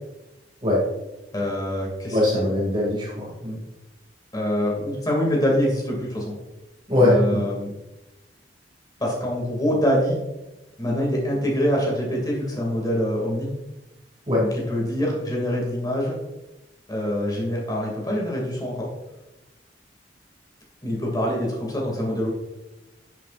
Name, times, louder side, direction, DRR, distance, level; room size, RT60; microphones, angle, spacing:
voice 1, 1.3-2.2 4.3-6.3 7.0-7.7 9.0-10.2 10.8-13.5 14.4-16.1 16.9-18.9 20.8-22.3, equal, 20° left, -2 dB, 2.5 m, -25 dB
voice 2, 2.1-3.6 6.9-7.4 14.3-14.4, left 1 dB, 30° right, -5 dB, 2.5 m, -21 dB
10.5 x 7.6 x 2.6 m, 1.0 s
head